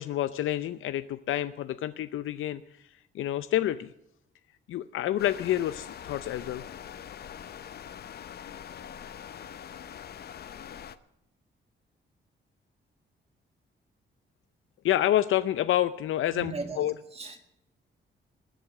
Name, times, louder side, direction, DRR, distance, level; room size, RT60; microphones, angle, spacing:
voice 1, 0.0-3.9 4.7-6.7 14.8-16.9, left 12 dB, 85° left, 12 dB, 0.6 m, -28 dB
sound 1, 5.2-11.0, left 9 dB, 50° left, 0.8 m, -43 dB
voice 2, 16.3-17.4, right 3 dB, 30° right, 7 dB, 1.8 m, -37 dB
20.0 x 7.9 x 7.3 m, 0.81 s
wide cardioid pair, 170°, 20 cm